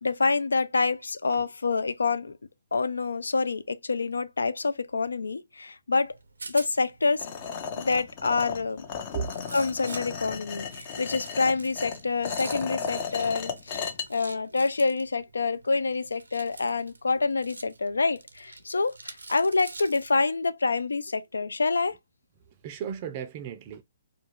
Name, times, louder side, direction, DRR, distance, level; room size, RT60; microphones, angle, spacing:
voice 1, 0.0-2.4 2.7-6.1 6.5-7.3 7.8-8.8 9.5-22.0, left 4 dB, 85° left, 0.3 m, -27 dB
Rattle, 6.0-20.1, right 3 dB, 90° right, 0.5 m, -47 dB
sound 1, 7.2-14.1, left 6 dB, 35° left, 0.5 m, -35 dB
voice 2, 22.5-23.8, right 7 dB, 35° right, 0.4 m, -35 dB
2.3 x 2.3 x 2.9 m
hypercardioid pair, 140°, 0 cm